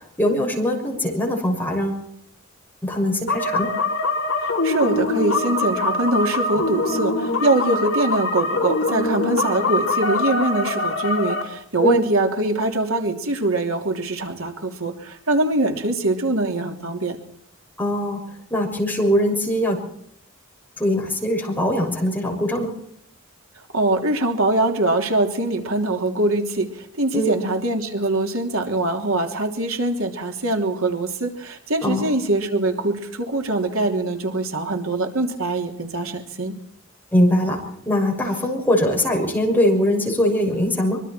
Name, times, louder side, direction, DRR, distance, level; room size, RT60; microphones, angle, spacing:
voice 1, 0.2-2.0 2.8-3.7 11.8-12.0 17.8-18.2 18.5-19.9 20.8-22.7 27.1-27.4 31.8-32.1 37.1-37.6 37.8-41.0, equal, 10° left, 0 dB, 6.4 m, -21 dB
sound 1, 3.3-11.4, left 2 dB, 65° left, 4.1 m, -23 dB
voice 2, 4.4-17.2 23.7-36.6, right 2 dB, 85° right, 4 dB, 3.3 m, -23 dB
25.0 x 23.5 x 4.6 m, 0.70 s
head